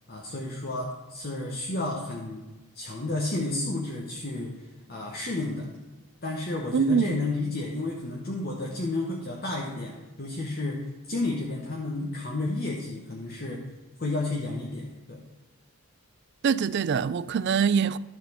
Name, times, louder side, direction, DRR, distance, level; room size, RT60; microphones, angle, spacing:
voice 1, 0.1-2.5 2.7-5.7 6.2-13.6 14.0-15.2, left 2 dB, 45° left, 1.1 m, -32 dB
voice 2, 6.7-7.2 16.4-18.0, right 6 dB, 50° right, 0.3 m, -24 dB
12.5 x 4.2 x 7.0 m
head